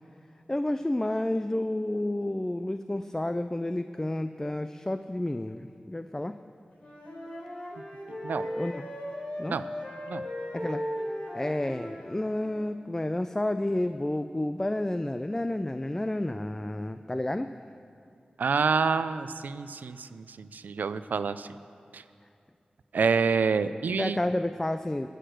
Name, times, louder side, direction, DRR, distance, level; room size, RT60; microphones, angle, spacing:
voice 1, 0.5-6.4 8.6-8.9 9.4-9.6 10.5-10.8 11.3-17.5 24.0-25.1, left 1 dB, 20° left, 10 dB, 0.4 m, -30 dB
Wind instrument woodwind instrument, 6.7-12.4, equal, 45° left, 3.4 m, -37 dB
voice 2, 18.4-21.5 21.9-22.0 22.9-24.2, right 5 dB, 90° right, 13 dB, 0.4 m, -27 dB
15.5 x 6.6 x 6.4 m, 2.4 s
cardioid pair, 45°, 3 cm